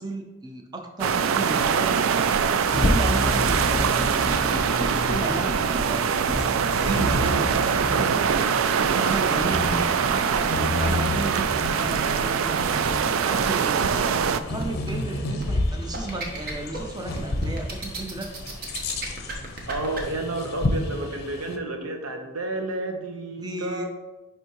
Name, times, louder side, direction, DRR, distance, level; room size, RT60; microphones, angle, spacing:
voice 1, 0.0-2.0 2.7-6.1 6.6-8.2 9.0-10.4 10.7-12.8 13.2-14.1 14.3-18.3 23.4-23.9, right 2 dB, 20° right, 3 dB, 0.6 m, -34 dB
sound 1, 1.0-14.4, right 7 dB, 70° right, 0.3 m, -23 dB
Bird vocalization bird call bird song, 2.1-21.6, left 1 dB, 45° left, 0.6 m, -31 dB
sound 2, 3.4-20.0, right 1 dB, 45° right, 1.0 m, -35 dB
voice 2, 19.7-23.9, right 2 dB, 85° right, 4 dB, 1.0 m, -31 dB
10.0 x 3.5 x 3.0 m, 1.1 s
head